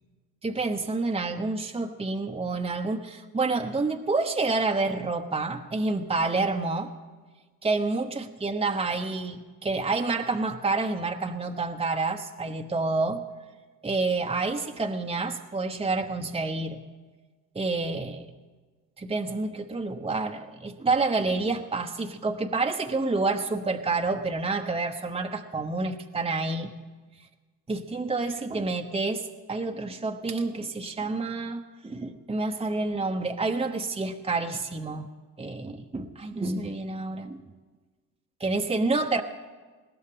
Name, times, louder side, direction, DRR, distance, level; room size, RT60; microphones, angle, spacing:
voice 1, 0.4-6.9 7.6-13.3 13.8-16.8 17.5-18.3 19.0-26.7 27.7-35.1 35.4-37.4 38.4-39.2, right 3 dB, 15° right, 4 dB, 1.1 m, -28 dB
20.5 x 17.0 x 3.8 m, 1.3 s
supercardioid pair, 65°, 40 cm